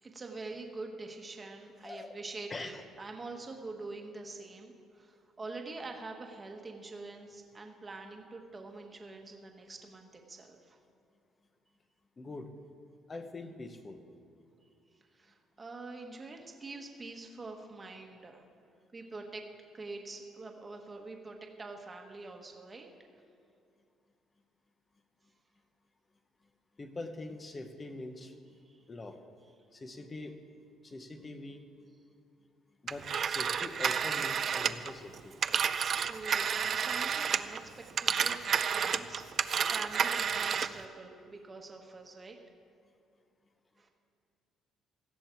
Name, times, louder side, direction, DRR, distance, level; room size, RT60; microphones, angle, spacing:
voice 1, 0.0-10.8 15.1-18.5 18.9-19.5 19.7-22.9 28.6-28.9 36.0-37.6 38.0-42.4 43.8-43.9, right 3 dB, 20° right, 2 dB, 1.3 m, -45 dB
voice 2, 1.8-2.1 2.5-2.8 12.2-12.5 13.1-14.0 26.8-28.3 28.9-29.2 29.7-30.4 30.8-31.7 32.8-35.4, left 2 dB, 20° left, 7 dB, 1.0 m, -43 dB
Telephone, 32.9-37.6 37.9-40.8, right 7 dB, 40° right, 0.5 m, -30 dB
17.0 x 14.5 x 4.6 m, 2.4 s
cardioid pair, 155°, 0 cm